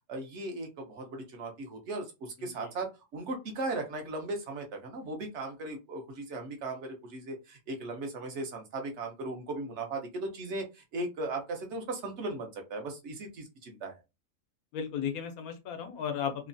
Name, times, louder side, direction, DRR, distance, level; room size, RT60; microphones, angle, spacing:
voice 1, 0.1-14.0, right 2 dB, 60° right, 3 dB, 0.9 m, -37 dB
voice 2, 14.7-16.5, left 7 dB, 85° left, 6 dB, 1.1 m, -35 dB
3.1 x 2.2 x 2.5 m, 0.25 s
omnidirectional pair, 1.5 m